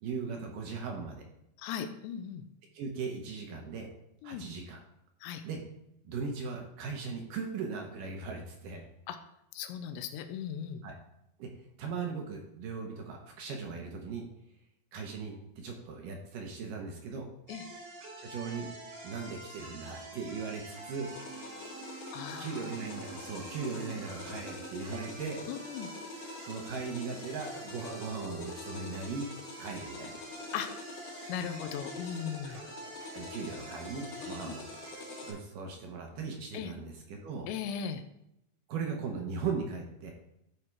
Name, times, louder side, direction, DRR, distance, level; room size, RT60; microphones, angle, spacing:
voice 1, 0.0-1.2 2.7-3.9 4.2-4.8 5.4-5.6 6.0-8.9 10.8-10.9 11.4-11.5 11.8-14.3 14.9-17.3 18.2-18.7 19.0-21.1 22.4-25.4 26.4-29.3 29.6-30.2 32.4-32.6 33.1-34.6 35.2-37.5 38.7-40.1, right 5 dB, 70° right, 2 dB, 2.1 m, -38 dB
voice 2, 1.6-2.4 4.2-4.5 5.2-5.4 9.1-9.2 9.5-10.8 17.5-17.7 22.1-22.7 23.8-24.0 25.5-25.9 30.5-30.7 31.3-32.6 34.2-34.6 36.5-36.7 37.5-38.0, left 8 dB, 90° left, 9 dB, 2.9 m, -38 dB
sound 1, 17.5-35.3, right 2 dB, 85° right, 4.8 m, -46 dB
sound 2, 21.0-35.3, left 5 dB, 70° left, 1.9 m, -46 dB
12.5 x 4.4 x 4.7 m, 0.81 s
omnidirectional pair, 5.1 m